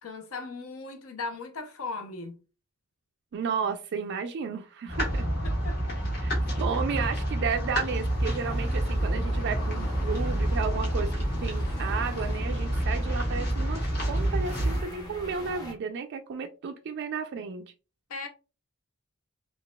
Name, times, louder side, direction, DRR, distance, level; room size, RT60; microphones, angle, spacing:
voice 1, 0.0-2.4 5.4-6.0 18.1-18.3, left 3 dB, 70° left, 0.7 m, -38 dB
voice 2, 3.3-5.3 6.2-17.7, right 5 dB, 55° right, 0.3 m, -33 dB
sound 1, 4.9-14.8, right 1 dB, 45° left, 1.5 m, -28 dB
sound 2, 7.5-15.7, equal, 20° left, 0.6 m, -44 dB
3.9 x 2.4 x 2.2 m
head